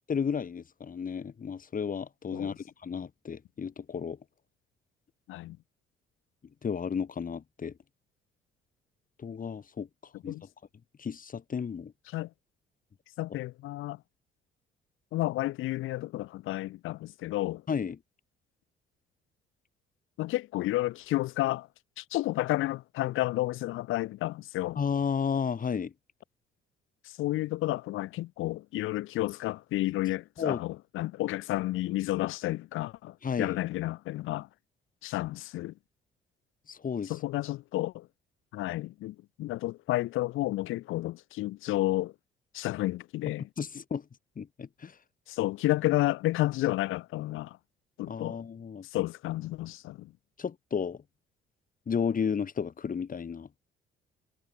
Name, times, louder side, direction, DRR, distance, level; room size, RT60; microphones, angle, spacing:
voice 1, 0.1-4.2 6.6-7.7 9.2-9.9 10.2-10.3 11.0-11.9 13.3-13.4 17.7-18.0 24.8-25.9 30.4-30.6 33.2-33.6 36.7-37.1 43.6-44.0 44.4-44.9 48.1-48.9 50.4-51.0 51.9-53.5, left 6 dB, 45° left, 2.4 m, -33 dB
voice 2, 13.2-14.0 15.1-17.6 20.2-21.7 22.0-24.8 27.0-34.5 35.0-35.7 37.1-38.1 38.5-42.1 42.5-43.5 45.3-47.6 48.0-48.4 48.9-50.1, left 17 dB, 80° left, 2.1 m, -31 dB
supercardioid pair, 65°, 20 cm